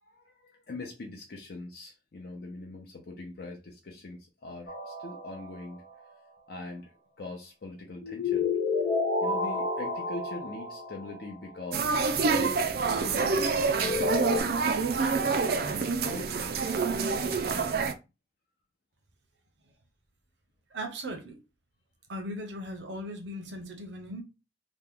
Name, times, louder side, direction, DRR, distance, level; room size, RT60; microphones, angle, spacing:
voice 1, 0.0-5.8 6.5-6.9 7.2-8.5 9.2-14.9 16.0-16.6, left 2 dB, 55° left, 0.6 m, -42 dB
sound 1, 4.7-5.8 8.0-11.3 13.7-14.4, left 3 dB, 90° left, 0.8 m, -30 dB
sound 2, 11.7-17.9, right 4 dB, 55° right, 0.4 m, -27 dB
voice 2, 20.7-21.4 22.1-24.2, equal, 80° right, 0.9 m, -38 dB
3.0 x 2.2 x 3.6 m
head